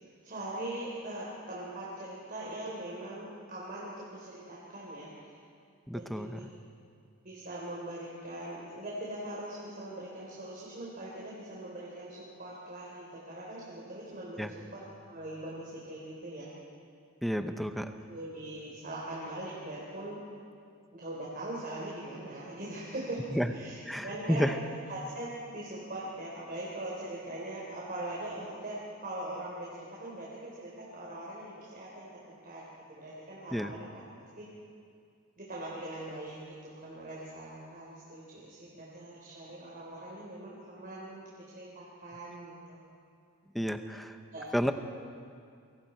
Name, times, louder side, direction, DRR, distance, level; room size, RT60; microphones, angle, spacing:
voice 1, 0.2-5.3 5.9-6.4 7.2-16.5 17.8-20.2 20.9-24.5 24.9-32.6 32.9-33.9 34.2-34.5 35.4-36.4 36.6-42.8 44.3-44.5, right 1 dB, 40° right, -5 dB, 3.9 m, -41 dB
voice 2, 5.9-6.5 14.4-14.5 17.2-17.9 23.4-23.5 23.9-24.5 33.5-33.7 43.5-44.1 44.5-44.7, equal, ahead, 7 dB, 0.8 m, -31 dB
28.0 x 23.5 x 4.5 m, 2.3 s
head